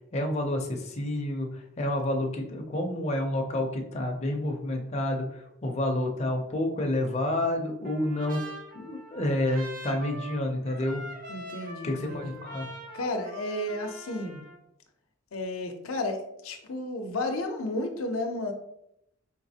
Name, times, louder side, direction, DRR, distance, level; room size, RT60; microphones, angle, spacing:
voice 1, 0.1-11.0 11.8-12.7, left 1 dB, 30° left, 2 dB, 0.5 m, -29 dB
Trumpet, 7.8-14.6, right 1 dB, 40° right, 0.6 m, -43 dB
voice 2, 11.3-12.4 12.9-14.4 15.3-18.5, left 2 dB, 90° left, 4 dB, 0.6 m, -32 dB
3.9 x 3.2 x 2.7 m, 0.79 s
head